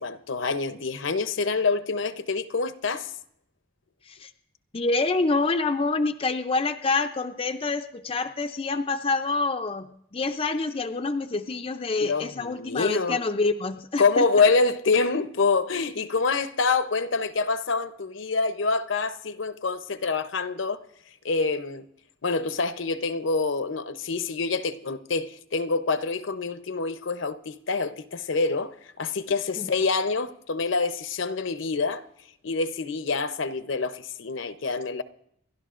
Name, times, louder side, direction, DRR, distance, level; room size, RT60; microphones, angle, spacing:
voice 1, 0.0-3.1 12.0-13.2 14.0-20.8 21.2-21.9 22.2-32.0 32.4-35.0, left 4 dB, 65° left, 0.7 m, -26 dB
voice 2, 4.7-14.2 29.6-29.7, left 3 dB, 25° left, 0.5 m, -27 dB
28.5 x 12.0 x 2.5 m
head